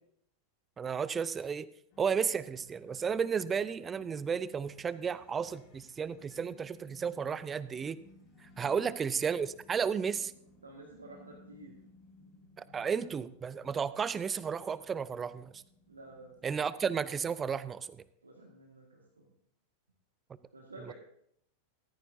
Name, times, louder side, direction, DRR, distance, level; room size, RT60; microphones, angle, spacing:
voice 1, 0.8-1.7 2.0-8.0 8.6-10.3 12.6-15.6 16.4-18.0 20.8-20.9, right 6 dB, 20° right, 17 dB, 0.5 m, -33 dB
sound 1, 1.9-16.5, left 2 dB, 40° left, 3.9 m, -60 dB
voice 2, 10.6-11.7 15.9-16.7 18.2-19.3 20.5-20.9, right 2 dB, 75° right, -1 dB, 1.8 m, -51 dB
14.5 x 14.0 x 2.7 m, 0.72 s
figure-of-eight pair, 90°, 0 cm